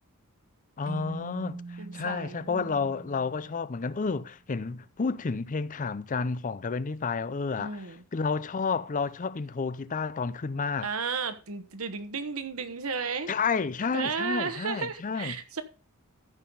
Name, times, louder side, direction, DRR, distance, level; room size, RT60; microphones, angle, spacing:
voice 1, 0.8-10.9 13.3-15.4, left 4 dB, 35° left, 0.5 m, -31 dB
Keyboard (musical), 0.9-4.1, right 3 dB, 40° right, 1.1 m, -43 dB
voice 2, 1.8-2.8 7.6-8.0 10.8-13.3 13.9-15.6, right 5 dB, 70° right, 1.2 m, -33 dB
14.0 x 5.8 x 3.9 m
head